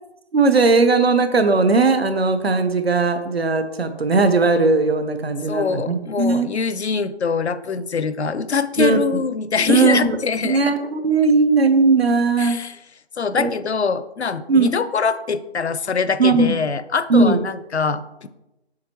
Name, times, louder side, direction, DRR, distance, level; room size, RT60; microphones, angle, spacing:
voice 1, 0.3-6.5 8.8-9.0 9.7-10.2 10.4-12.6 13.4-13.5 14.5-14.7 16.2-16.5 17.1-17.4, right 3 dB, 65° right, 9 dB, 0.8 m, -18 dB
voice 2, 5.5-10.6 12.4-12.8 13.2-18.3, left 5 dB, 75° left, 14 dB, 0.6 m, -23 dB
7.5 x 6.1 x 3.0 m, 0.95 s
figure-of-eight pair, 180°, 33 cm